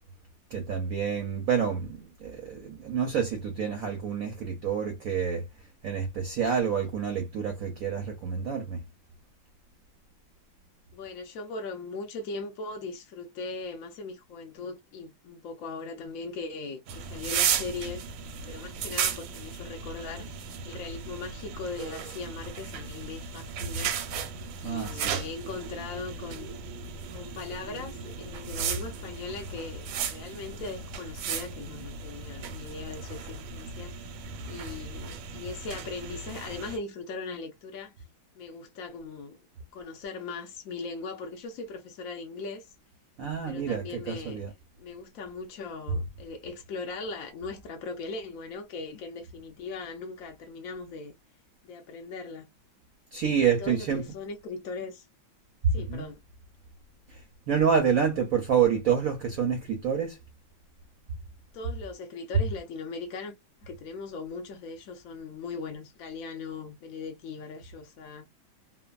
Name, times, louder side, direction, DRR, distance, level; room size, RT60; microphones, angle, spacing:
voice 1, 0.5-5.4 5.8-8.8 24.6-25.2 43.2-44.5 53.1-54.0 55.8-56.1 57.1-60.2, right 7 dB, 70° right, 0.8 m, -28 dB
voice 2, 10.9-18.0 18.5-20.4 20.6-24.0 24.6-26.6 27.1-34.1 34.5-37.9 38.3-39.4 39.7-42.7 43.4-44.4 44.8-51.1 51.6-52.5 53.6-55.1 55.7-56.2 61.5-63.3 63.6-68.3, left 4 dB, 75° left, 0.7 m, -39 dB
ripping paper ambix test, 16.9-36.8, right 7 dB, 85° right, 1.4 m, -35 dB
3.2 x 2.1 x 2.3 m
omnidirectional pair, 2.2 m